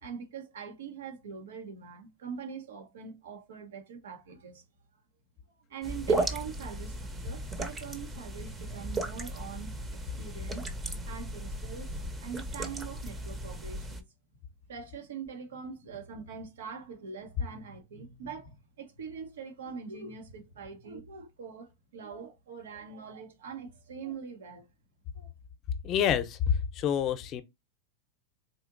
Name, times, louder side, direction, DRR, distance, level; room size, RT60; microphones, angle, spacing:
voice 1, 0.0-4.6 5.7-10.6 11.1-14.0 14.7-24.7 25.1-25.3, right 6 dB, 85° right, 1.0 m, -43 dB
sound 1, 5.8-14.0, right 2 dB, 20° right, 0.7 m, -35 dB
voice 2, 25.8-27.4, left 8 dB, 40° left, 0.6 m, -27 dB
4.1 x 2.8 x 2.5 m
hypercardioid pair, 110°, 0 cm